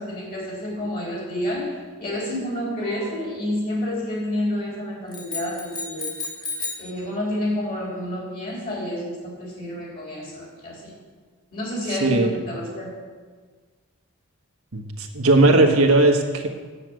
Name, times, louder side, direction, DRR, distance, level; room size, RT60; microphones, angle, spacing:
voice 1, 0.0-6.1 6.8-10.9 11.5-12.9, left 1 dB, 40° left, -4 dB, 3.6 m, -29 dB
sound 1, 5.1-6.9, left 3 dB, 20° left, 1.9 m, -32 dB
voice 2, 12.0-12.3 14.7-16.5, right 2 dB, 80° right, 3 dB, 1.4 m, -17 dB
9.9 x 7.5 x 7.7 m, 1.5 s
head